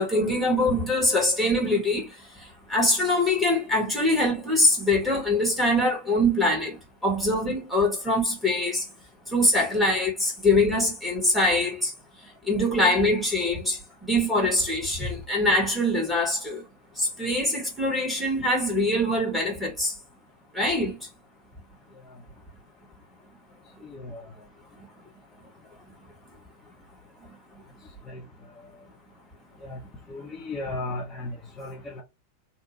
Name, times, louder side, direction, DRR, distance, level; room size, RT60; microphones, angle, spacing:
voice 1, 0.0-2.1 2.7-8.8 9.3-11.9 12.4-16.6 17.0-19.9 20.5-21.0, left 1 dB, 5° right, 1.7 m, -23 dB
voice 2, 23.8-24.3 28.1-28.2 29.6-29.8 30.1-32.0, left 2 dB, 20° left, 1.0 m, -35 dB
3.5 x 2.4 x 3.0 m
figure-of-eight pair, 90°, 0 cm